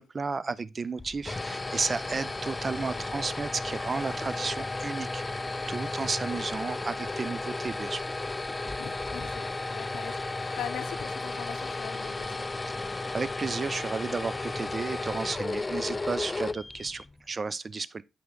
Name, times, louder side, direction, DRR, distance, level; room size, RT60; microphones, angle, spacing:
voice 1, 0.0-5.4 5.7-8.0 13.1-18.0, right 4 dB, 40° right, 0.6 m, -33 dB
sound 1, 1.0-17.2, left 2 dB, 25° left, 0.4 m, -34 dB
voice 2, 8.8-12.4, left 11 dB, 80° left, 0.6 m, -42 dB
8.3 x 5.4 x 3.8 m
supercardioid pair, 55°, 0 cm